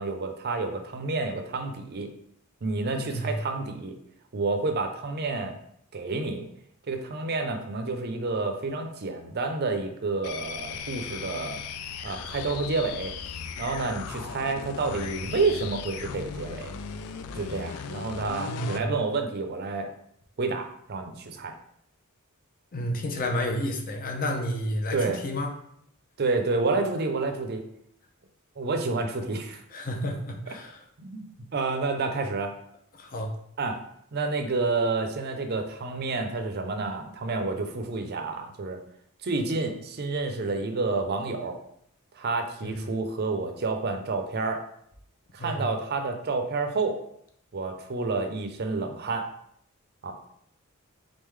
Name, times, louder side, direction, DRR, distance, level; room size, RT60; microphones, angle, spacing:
voice 1, 0.0-2.1 2.6-4.0 4.3-5.6 5.9-6.5 6.9-11.6 12.0-13.1 13.6-16.7 17.3-19.9 20.4-21.6 24.9-25.2 26.2-27.6 28.6-29.6 31.0-31.2 31.5-32.5 33.6-33.8 34.1-38.8 39.2-41.6 42.2-44.6 45.3-47.0 47.5-49.3 50.0-50.3, right 3 dB, 45° right, 6 dB, 0.5 m, -29 dB
voice 2, 2.9-3.4 18.4-18.9 22.7-25.0 25.2-25.5 29.7-30.8 32.9-33.3 42.6-42.7 45.4-45.6, equal, 40° left, 2 dB, 0.7 m, -31 dB
sound 1, 10.2-18.9, left 6 dB, 75° left, 0.3 m, -37 dB
3.8 x 3.6 x 3.2 m, 0.71 s
head